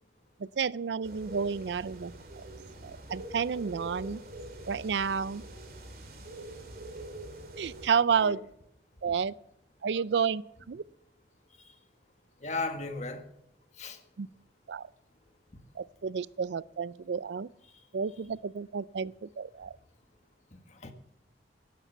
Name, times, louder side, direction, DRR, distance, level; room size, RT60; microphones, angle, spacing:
voice 1, 0.4-2.1 2.4-2.5 2.8-4.2 4.7-5.4 7.6-8.4 9.0-9.3 9.8-10.4 10.7-10.8 14.2-14.3 14.7-14.8 15.8-17.5 17.9-19.8, right 6 dB, 80° right, 0.4 m, -30 dB
sound 1, 1.0-7.9, right 1 dB, 55° right, 2.6 m, -45 dB
voice 2, 12.4-13.3 13.8-14.0 20.5-20.9, left 3 dB, 40° left, 1.5 m, -36 dB
12.0 x 11.5 x 6.9 m
head